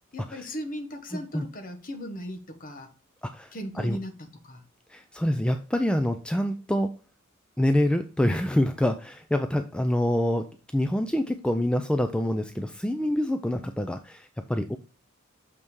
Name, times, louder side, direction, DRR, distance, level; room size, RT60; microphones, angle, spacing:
voice 1, 0.1-2.9 3.5-4.6, equal, 40° left, 1.1 m, -37 dB
voice 2, 1.1-1.5 3.2-4.0 4.9-6.9 7.6-14.8, left 1 dB, 5° left, 0.3 m, -26 dB
6.6 x 5.5 x 3.1 m
head